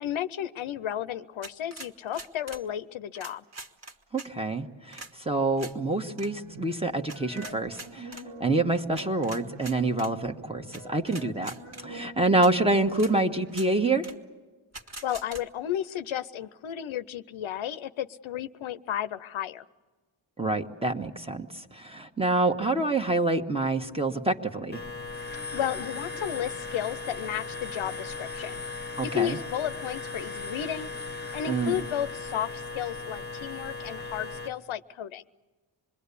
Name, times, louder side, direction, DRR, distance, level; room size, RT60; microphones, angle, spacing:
voice 1, 0.0-3.4 15.0-19.6 25.3-28.6 29.0-30.9 31.3-35.2, left 10 dB, 75° left, 13 dB, 0.8 m, -33 dB
sound 1, 1.4-2.6 3.1-4.3 4.9-5.1 5.6-5.7 6.1-6.3 7.1-8.2 8.9-10.1 10.7-10.8 11.1-11.8 12.4-12.5 12.9-13.1 13.5-13.7 14.0-14.1 14.7-15.4, right 2 dB, 30° right, 1.7 m, -43 dB
voice 2, 4.1-11.5 11.8-14.1 20.4-24.8 29.0-29.4 31.5-31.8, right 2 dB, 10° right, 5 dB, 1.3 m, -27 dB
sound 2, 5.7-12.9, right 1 dB, 80° right, 3.3 m, -45 dB
sound 3, 24.7-34.5, left 3 dB, 20° left, 1.0 m, -37 dB
26.5 x 22.0 x 8.4 m, 1.3 s
wide cardioid pair, 115°, 48 cm